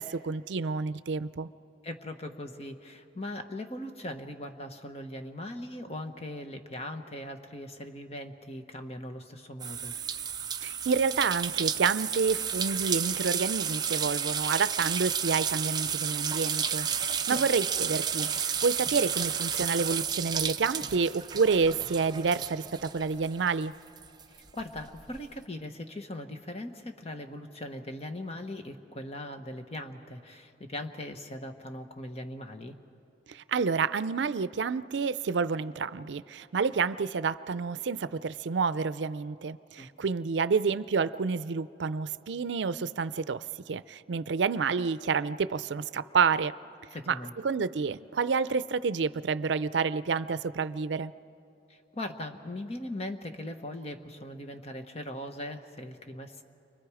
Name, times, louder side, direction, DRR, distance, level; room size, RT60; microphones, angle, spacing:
voice 1, 0.0-1.5 10.6-23.7 33.3-46.5 47.1-51.1, right 5 dB, 80° right, 15 dB, 0.5 m, -29 dB
voice 2, 1.8-10.0 17.3-17.4 24.4-32.8 39.8-39.9 46.9-47.3 51.7-56.4, left 1 dB, 35° left, 6 dB, 1.2 m, -40 dB
sound 1, 9.6-23.6 24.0-25.2, right 7 dB, 25° right, 0.6 m, -32 dB
30.0 x 24.5 x 4.9 m, 2.7 s
head